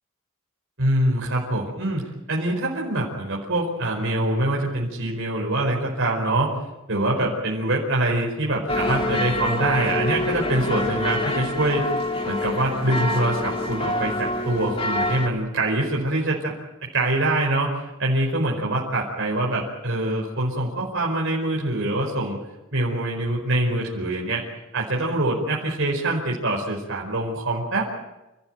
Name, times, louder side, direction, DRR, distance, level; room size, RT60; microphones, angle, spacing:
voice 1, 0.8-2.0 2.3-6.5 6.9-11.9 12.2-16.5 16.9-22.4 22.7-24.4 24.7-27.9, right 1 dB, 55° right, -2 dB, 5.1 m, -24 dB
sound 1, 8.7-15.3, left 1 dB, 25° left, 2.9 m, -26 dB
29.0 x 15.5 x 9.3 m, 0.99 s
head